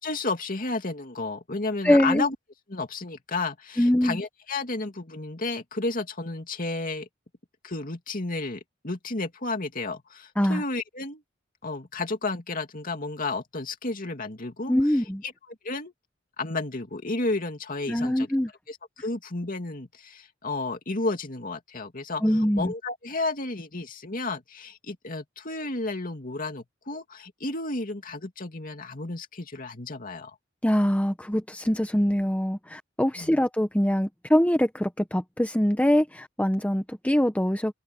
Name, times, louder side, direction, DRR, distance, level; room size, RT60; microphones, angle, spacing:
voice 1, 0.0-2.3 2.7-7.1 7.6-11.2 11.6-14.7 15.2-15.9 16.4-18.3 18.7-30.3 33.2-33.4, left 3 dB, 45° left, 2.7 m, -32 dB
voice 2, 1.8-2.2 3.8-4.2 10.4-10.6 14.7-15.2 17.9-18.5 22.2-22.7 30.6-37.7, equal, 5° left, 0.9 m, -23 dB
head